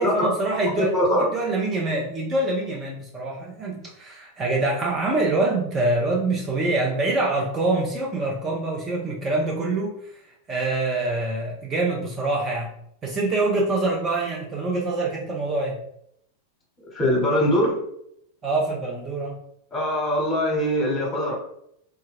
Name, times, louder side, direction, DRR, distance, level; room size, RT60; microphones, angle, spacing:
voice 1, 0.0-10.1 10.5-12.7 13.0-15.8 18.4-19.4, right 2 dB, 20° right, -2 dB, 0.4 m, -25 dB
voice 2, 0.8-1.3 16.9-17.8 19.7-21.3, left 1 dB, 20° left, -2 dB, 1.0 m, -22 dB
2.1 x 2.1 x 3.4 m, 0.74 s
figure-of-eight pair, 90°, 0 cm